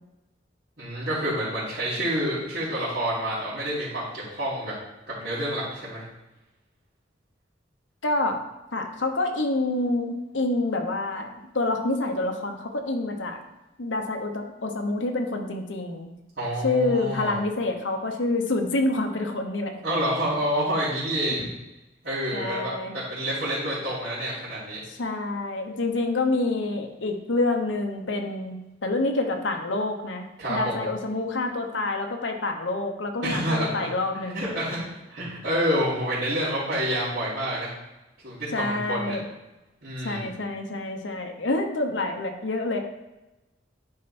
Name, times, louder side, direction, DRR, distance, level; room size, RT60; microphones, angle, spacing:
voice 1, 0.8-4.7 5.1-6.0 16.4-17.4 19.8-21.4 22.0-24.8 30.4-30.9 33.2-33.7 34.3-34.8 35.1-37.7 38.2-39.1 39.8-40.3, equal, 65° right, -14 dB, 3.1 m, -28 dB
voice 2, 8.0-8.4 8.7-11.3 11.5-13.4 13.8-16.1 16.6-19.8 22.3-22.9 24.9-34.5 38.5-39.2 40.0-42.8, left 2 dB, 75° left, 4 dB, 1.0 m, -27 dB
10.0 x 4.4 x 4.3 m, 1.0 s
head